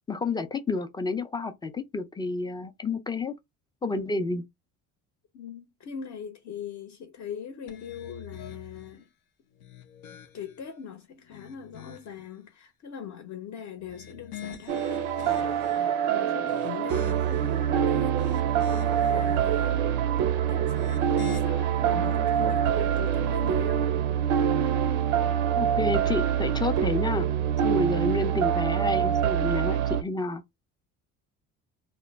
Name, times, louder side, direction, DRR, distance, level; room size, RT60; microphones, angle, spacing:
voice 1, 0.1-3.3 3.8-4.4 25.5-27.3 27.6-30.4, left 3 dB, 10° left, 0.4 m, -30 dB
voice 2, 5.3-9.1 10.3-18.2 18.7-19.9 20.5-23.9, left 8 dB, 45° left, 0.7 m, -41 dB
sound 1, 7.7-9.0 9.5-10.7 11.2-12.3 13.7-15.9 16.4-17.5 18.0-19.1 20.6-21.4, left 8 dB, 85° left, 0.5 m, -45 dB
sound 2, 14.7-30.0, right 9 dB, 85° right, 0.5 m, -25 dB
2.1 x 2.0 x 3.3 m
hypercardioid pair, 65°, 41 cm